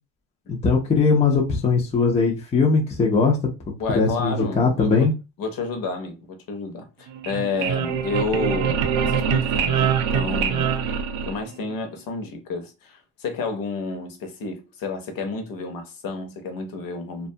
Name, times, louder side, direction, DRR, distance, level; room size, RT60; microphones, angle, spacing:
voice 1, 0.6-3.4 3.9-5.1, left 4 dB, 15° left, 0.3 m, -20 dB
voice 2, 3.8-5.1 5.4-11.0 11.3-17.3, left 3 dB, 45° left, 0.7 m, -30 dB
sound 1, 7.1-11.8, right 7 dB, 70° right, 0.6 m, -24 dB
2.4 x 2.3 x 2.7 m
cardioid pair, 135°, 49 cm